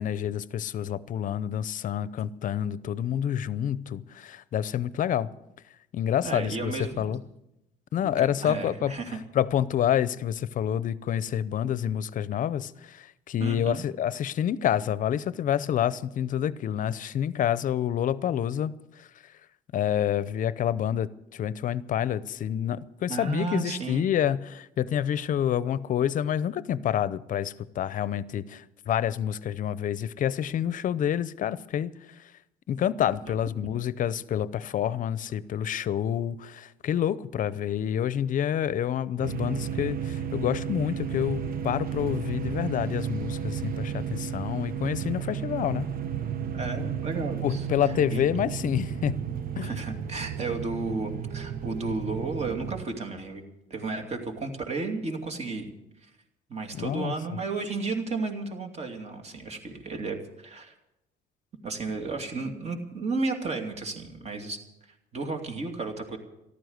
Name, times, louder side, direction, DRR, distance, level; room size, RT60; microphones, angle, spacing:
voice 1, 0.0-5.3 5.9-7.2 7.9-9.0 9.3-19.3 19.7-32.3 32.7-45.9 47.4-49.2 49.6-49.8 56.7-57.1, left 10 dB, 50° left, 0.7 m, -28 dB
voice 2, 6.2-7.1 8.0-9.2 13.4-13.8 23.1-24.1 46.5-48.2 49.6-53.4 53.7-55.7 56.5-60.7 61.6-64.6 65.1-66.2, right 3 dB, 40° right, 2.7 m, -33 dB
sound 1, 39.2-52.9, right 8 dB, 60° right, 1.0 m, -33 dB
14.0 x 12.0 x 8.0 m
cardioid pair, 110°, 17 cm